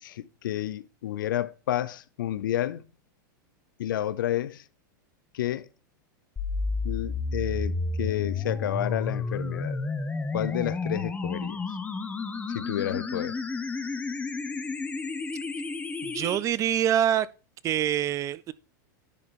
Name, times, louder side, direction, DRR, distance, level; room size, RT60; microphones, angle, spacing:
voice 1, 0.0-2.8 3.8-4.6 5.3-5.7 6.8-9.8 10.3-11.6 12.5-13.3, left 12 dB, 85° left, 0.6 m, -30 dB
sound 1, 6.4-16.4, left 3 dB, 15° left, 1.1 m, -31 dB
voice 2, 16.0-17.3 17.6-18.5, right 11 dB, 30° right, 0.4 m, -25 dB
10.0 x 4.4 x 4.2 m
supercardioid pair, 130°, 11 cm